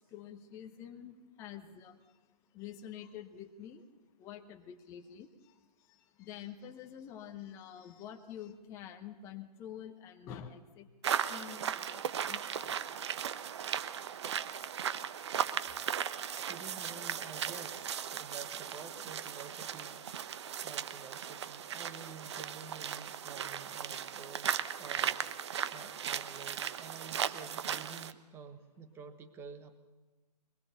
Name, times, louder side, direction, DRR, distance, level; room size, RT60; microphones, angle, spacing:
voice 1, 0.0-2.0 2.5-3.8 4.2-5.3 6.2-10.9 11.3-12.0 12.3-12.8, left 9 dB, 15° left, 5 dB, 0.9 m, -47 dB
sound 1, 11.0-28.1, right 8 dB, 40° right, 0.9 m, -37 dB
voice 2, 16.3-20.0 20.5-29.8, right 5 dB, 10° right, 9 dB, 1.3 m, -50 dB
23.0 x 21.5 x 6.9 m, 1.2 s
figure-of-eight pair, 140°, 21 cm